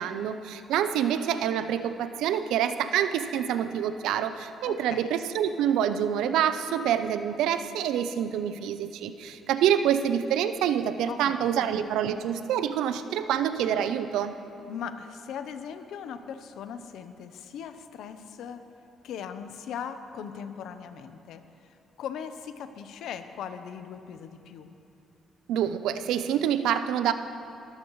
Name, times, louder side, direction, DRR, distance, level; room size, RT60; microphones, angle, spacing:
voice 1, 0.0-14.3 25.5-27.1, right 9 dB, 90° right, 11 dB, 0.6 m, -27 dB
voice 2, 4.7-5.1 11.1-11.7 14.7-18.6 19.0-21.4 22.0-24.7, left 7 dB, 80° left, 10 dB, 0.8 m, -39 dB
21.5 x 14.0 x 3.2 m, 2.9 s
cardioid pair, 90°, 0 cm